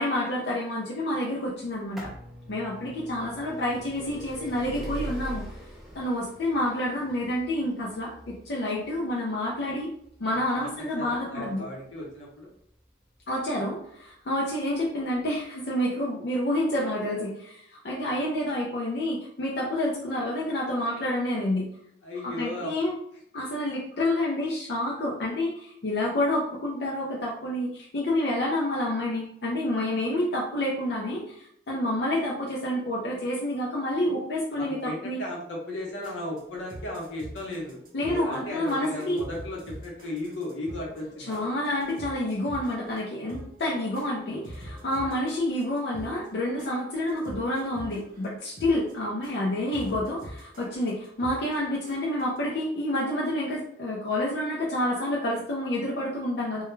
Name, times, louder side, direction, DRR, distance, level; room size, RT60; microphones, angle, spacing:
voice 1, 0.0-2.1 2.5-5.5 5.9-9.9 10.2-11.6 13.3-21.7 22.2-23.0 23.3-35.2 37.9-39.2 41.3-56.6, left 1 dB, 65° left, -4 dB, 0.5 m, -28 dB
sound 1, 1.6-13.3 14.1-14.2 15.1-15.2 15.4-15.5, equal, ahead, 0.4 m, -42 dB
voice 2, 2.8-3.1 10.5-12.5 22.0-22.7 34.5-41.5, left 1 dB, 85° left, -3 dB, 0.8 m, -36 dB
sound 2, 35.8-52.4, equal, 50° right, 0.6 m, -45 dB
2.2 x 2.2 x 3.0 m, 0.69 s
head